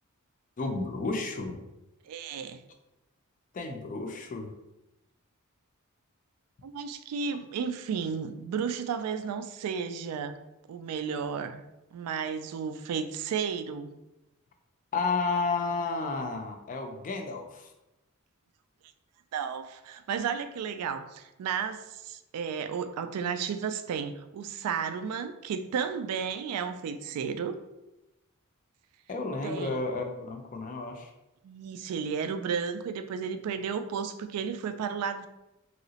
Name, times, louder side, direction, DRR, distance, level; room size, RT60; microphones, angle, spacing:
voice 1, 0.6-1.6 3.5-4.5 14.9-17.7 29.1-31.1, left 3 dB, 35° left, 5 dB, 0.4 m, -32 dB
voice 2, 2.0-2.6 6.6-10.4 10.7-11.6 11.9-13.9 19.3-27.6 29.4-29.8 31.4-35.3, right 6 dB, 80° right, 11 dB, 0.3 m, -33 dB
3.0 x 2.8 x 2.7 m, 0.97 s
head